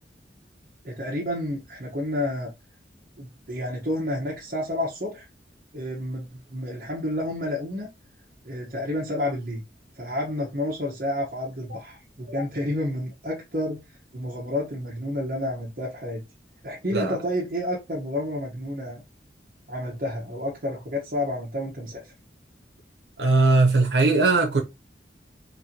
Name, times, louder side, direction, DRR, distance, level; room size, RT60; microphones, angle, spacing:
voice 1, 0.8-2.5 3.2-5.3 5.7-7.9 8.4-9.6 10.0-13.8 14.1-16.2 16.6-19.0 19.7-22.1, left 1 dB, 50° right, 0.9 m, -30 dB
voice 2, 23.2-24.6, right 3 dB, 80° right, 0.8 m, -19 dB
4.3 x 2.6 x 2.8 m
head